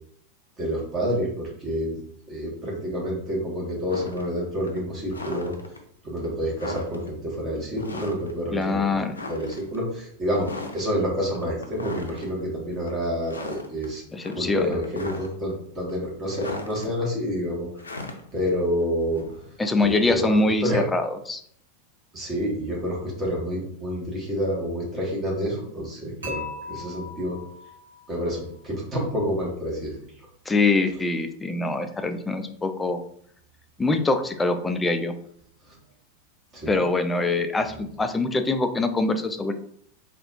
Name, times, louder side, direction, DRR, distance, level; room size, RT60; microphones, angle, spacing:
voice 1, 0.6-2.0 2.3-5.5 6.0-8.8 9.3-14.0 14.3-17.7 18.3-19.2 19.8-20.8 22.1-27.4 28.1-30.0 35.7-35.8 36.5-36.7 37.7-37.8, equal, 25° right, -3 dB, 1.5 m, -28 dB
sound 1, 3.9-4.3 4.6-5.8 6.2-6.3 6.5-7.1 7.8-8.3 8.6-8.7 9.1-9.8 10.3-10.9 11.3-12.3 12.7-12.9 13.2-13.9 14.2-15.5 15.9-16.9 17.8-19.5, left 2 dB, 75° left, 0.5 m, -37 dB
voice 2, 8.5-9.1 14.1-14.7 19.6-21.4 30.5-33.0 33.8-35.2 36.7-39.5, left 3 dB, 10° left, 8 dB, 0.4 m, -24 dB
Dishes pots and pans / Chink clink, 26.2-28.3, left 3 dB, 70° right, 1.4 m, -38 dB
4.0 x 2.5 x 2.6 m, 0.65 s
figure-of-eight pair, 90°, 0 cm